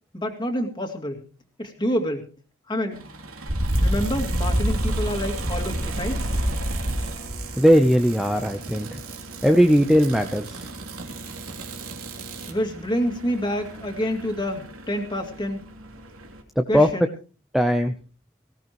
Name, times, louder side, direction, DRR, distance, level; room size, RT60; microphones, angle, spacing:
voice 1, 0.1-1.2 1.6-2.3 2.7-3.0 3.8-6.3 12.5-15.6 16.7-17.1, equal, 20° left, 3 dB, 2.4 m, -27 dB
sound 1, 2.9-16.4, equal, 70° right, 3.0 m, -30 dB
sound 2, 3.6-12.6, right 6 dB, 90° right, 3.2 m, -40 dB
voice 2, 7.6-9.0 9.4-10.7 16.6-16.9 17.5-17.9, equal, ahead, 5 dB, 0.7 m, -19 dB
19.0 x 17.5 x 3.1 m, 0.36 s
head